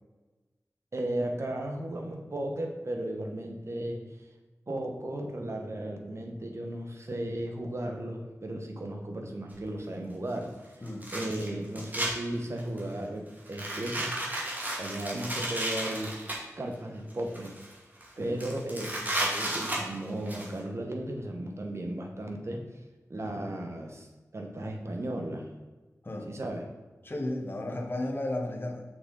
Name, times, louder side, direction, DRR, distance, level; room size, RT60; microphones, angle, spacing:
voice 1, 0.9-4.0 4.7-10.5 11.1-14.1 14.8-16.2 16.6-17.5 18.2-22.6 23.1-24.1 24.3-25.5 26.3-26.6, right 1 dB, 55° right, 2 dB, 1.2 m, -35 dB
sound 1, 9.5-9.6 10.9-12.1 12.6-12.9 13.5-16.4 17.1-17.7 18.0-18.1 18.4-20.5, right 1 dB, 30° right, 2.1 m, -33 dB
voice 2, 26.0-26.3 27.0-28.8, left 1 dB, 40° left, 0 dB, 1.2 m, -34 dB
6.2 x 6.2 x 4.0 m, 1.2 s
wide cardioid pair, 80°, 6 cm